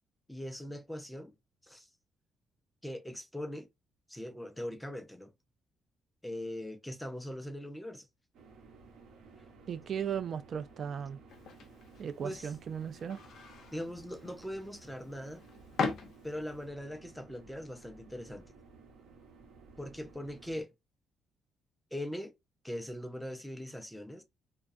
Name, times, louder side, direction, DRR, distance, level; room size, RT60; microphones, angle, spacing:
voice 1, 0.3-1.3 1.6-1.9 2.8-3.7 4.1-5.3 6.2-8.1 12.2-12.5 13.7-15.4 16.2-18.5 19.8-20.7 21.9-22.3 22.6-24.2, left 1 dB, 5° left, 0.5 m, -41 dB
sound 1, 8.3-20.6, right 4 dB, 75° right, 0.9 m, -56 dB
voice 2, 9.7-11.2 12.0-13.2, right 8 dB, 55° right, 0.3 m, -36 dB
sound 2, 11.3-16.7, left 5 dB, 65° left, 0.6 m, -41 dB
2.3 x 2.2 x 2.5 m
cardioid pair, 90°, 0 cm